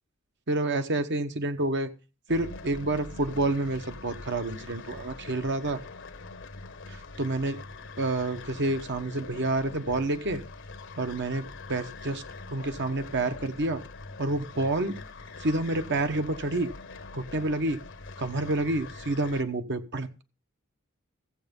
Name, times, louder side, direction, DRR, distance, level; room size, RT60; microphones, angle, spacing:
voice 1, 0.5-1.9 2.3-5.8 6.9-7.6 8.0-10.4 11.0-12.2 12.5-13.8 14.2-15.0 15.4-16.7 17.1-17.8 18.2-20.2, right 2 dB, 55° right, 8 dB, 1.2 m, -29 dB
sound 1, 2.3-19.4, left 3 dB, 60° left, 1.0 m, -43 dB
14.5 x 8.1 x 5.3 m, 0.33 s
head